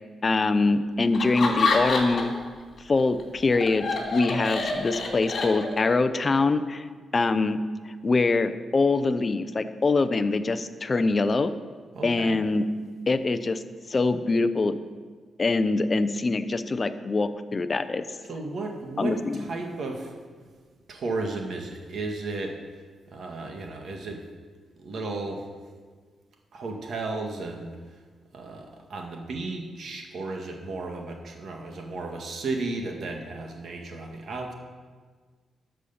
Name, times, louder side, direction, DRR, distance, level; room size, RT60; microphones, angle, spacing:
voice 1, 0.2-2.3 2.8-6.9 7.1-7.6 7.8-11.5 12.0-12.6 13.1-13.6 13.9-14.8 15.4-18.1 19.0-19.4, left 3 dB, 30° left, 11 dB, 0.6 m, -24 dB
Laughter, 1.1-2.4 2.8-6.0, left 3 dB, 50° left, 2.7 m, -27 dB
voice 2, 11.9-12.4 18.3-20.1 20.9-22.6 23.1-24.2 24.8-25.4 26.5-27.7 28.3-34.5, right 3 dB, 60° right, 2 dB, 1.8 m, -34 dB
12.5 x 6.5 x 7.0 m, 1.5 s
cardioid pair, 125°, 0 cm